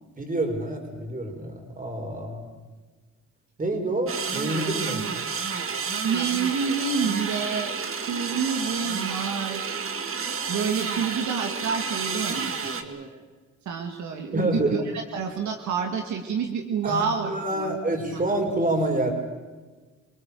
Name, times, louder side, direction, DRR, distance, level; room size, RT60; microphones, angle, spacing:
voice 1, 0.2-2.5 3.6-5.0 14.3-14.8 16.8-19.1, right 1 dB, 25° right, 4 dB, 4.9 m, -27 dB
sound 1, 4.1-12.8, right 5 dB, 45° right, 2.0 m, -30 dB
voice 2, 6.0-7.7 8.1-9.7 10.5-12.5 12.8-13.2 13.7-14.8 15.1-17.7 18.1-18.2, right 6 dB, 70° right, 3 dB, 2.3 m, -28 dB
27.5 x 19.0 x 6.9 m, 1.3 s
cardioid pair, 90°, 30 cm